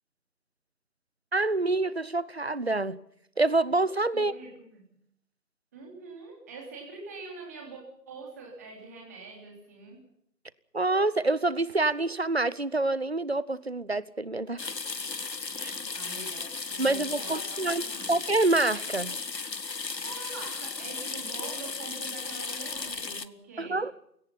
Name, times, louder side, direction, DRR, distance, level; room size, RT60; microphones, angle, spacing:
voice 1, 1.3-3.0 3.4-4.3 10.7-14.7 15.6-15.7 16.8-17.8 18.1-19.1 23.6-23.9, right 2 dB, 40° right, 19 dB, 0.8 m, -27 dB
voice 2, 4.1-5.0 5.7-7.8 8.1-10.0 15.6-18.2 19.7-23.8, right 3 dB, 10° right, -1 dB, 3.2 m, -44 dB
sound 1, 14.6-23.3, left 4 dB, 80° left, 1.5 m, -35 dB
29.5 x 18.0 x 5.7 m, 0.74 s
figure-of-eight pair, 170°, 49 cm